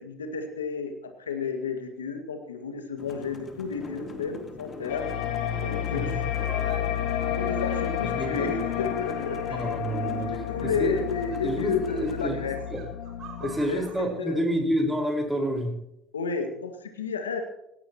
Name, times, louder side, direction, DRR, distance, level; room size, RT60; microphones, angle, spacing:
voice 1, 0.0-5.0 5.6-6.2 7.3-9.7 10.1-12.6 13.4-14.4 16.1-17.4, left 5 dB, 90° left, 6 dB, 1.9 m, -32 dB
sound 1, 3.0-12.2, left 3 dB, 35° left, 3.1 m, -42 dB
sound 2, 4.9-13.9, left 10 dB, 70° left, 2.3 m, -31 dB
sound 3, 6.4-6.8 7.4-10.3 10.9-14.1, right 7 dB, 55° right, 5.7 m, -49 dB
voice 2, 8.2-8.5 9.5-10.3 10.6-10.9 11.4-12.3 12.7-12.8 13.4-15.7, right 1 dB, 5° right, 2 dB, 4.9 m, -28 dB
18.0 x 17.5 x 3.0 m, 0.86 s
hypercardioid pair, 65°, 0 cm